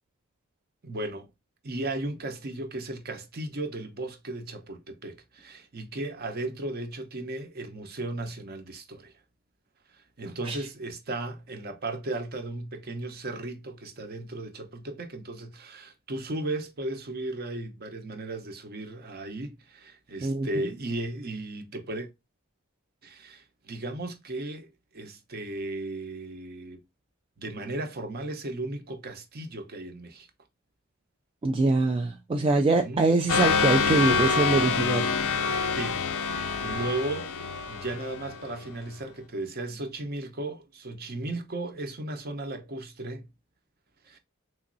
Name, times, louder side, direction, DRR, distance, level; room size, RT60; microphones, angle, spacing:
voice 1, 0.8-1.3 1.6-9.1 9.9-22.1 23.0-24.7 24.9-26.8 27.4-30.3 32.7-33.0 35.5-36.0 36.6-37.3 37.7-43.3 44.0-44.2, right 2 dB, 45° right, 0.7 m, -35 dB
voice 2, 31.4-35.1 36.7-36.8, right 3 dB, 25° right, 0.3 m, -24 dB
sound 1, 33.3-38.7, left 5 dB, 85° left, 0.5 m, -26 dB
3.8 x 3.0 x 2.5 m
head